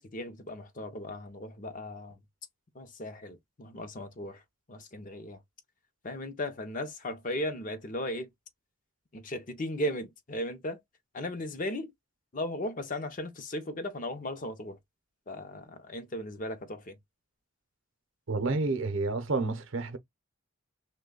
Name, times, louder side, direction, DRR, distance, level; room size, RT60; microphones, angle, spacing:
voice 1, 0.0-2.2 2.7-4.4 4.7-5.4 6.0-8.3 9.1-10.8 11.1-11.9 12.3-14.8 15.3-17.0, left 1 dB, 35° left, 0.6 m, -36 dB
voice 2, 18.3-20.0, right 3 dB, 60° right, 0.7 m, -29 dB
3.1 x 2.2 x 3.7 m
head